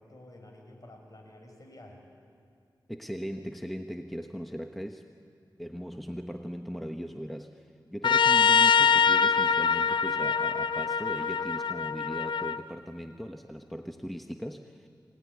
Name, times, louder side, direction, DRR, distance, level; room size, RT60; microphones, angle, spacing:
voice 1, 0.0-2.1, left 1 dB, 45° left, 2 dB, 6.1 m, -50 dB
voice 2, 2.9-5.0 5.6-14.9, equal, ahead, 5 dB, 1.1 m, -39 dB
Trumpet, 8.0-12.6, left 6 dB, 70° left, 0.6 m, -24 dB
24.5 x 18.5 x 9.9 m, 2.3 s
cardioid pair, 55°, 8 cm